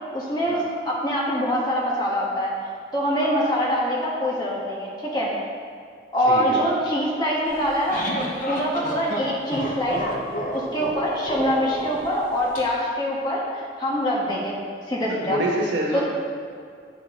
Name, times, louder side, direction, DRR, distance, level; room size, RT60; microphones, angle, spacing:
voice 1, 0.1-2.5 2.9-5.3 6.1-8.1 8.5-10.0 10.5-14.6 14.9-15.4 15.9-16.0, equal, 25° left, -5 dB, 1.4 m, -24 dB
voice 2, 6.2-6.6 15.3-16.0, right 1 dB, 90° right, -2 dB, 1.4 m, -26 dB
sound 1, 7.5-12.6, equal, 45° left, 1.0 m, -31 dB
8.4 x 6.1 x 3.8 m, 2.3 s
head